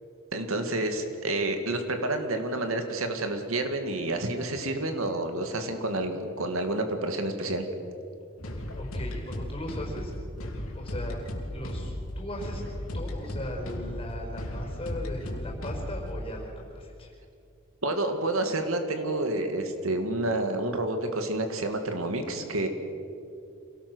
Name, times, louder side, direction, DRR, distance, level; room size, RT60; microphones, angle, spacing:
voice 1, 0.3-7.7 17.8-22.7, right 2 dB, 80° right, 5 dB, 2.2 m, -29 dB
sound 1, 8.4-16.1, left 1 dB, 90° left, 3.3 m, -35 dB
voice 2, 8.8-10.1 10.7-11.2 11.5-12.6 12.9-17.1, left 1 dB, 25° left, 0 dB, 4.9 m, -38 dB
26.5 x 18.0 x 6.3 m, 2.5 s
head